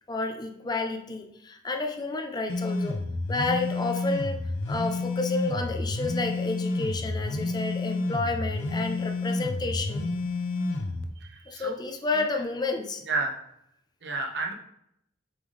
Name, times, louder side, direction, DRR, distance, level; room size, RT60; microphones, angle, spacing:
voice 1, 0.1-3.0 3.3-4.4 4.7-10.1 11.5-13.0, left 3 dB, 20° left, 4 dB, 0.5 m, -30 dB
sound 1, 2.5-11.0, left 2 dB, 85° left, 0.7 m, -30 dB
voice 2, 11.2-11.7 12.1-12.2 13.1-13.3 14.0-14.5, right 3 dB, 60° right, 2 dB, 1.0 m, -31 dB
7.9 x 3.5 x 3.8 m, 0.76 s
head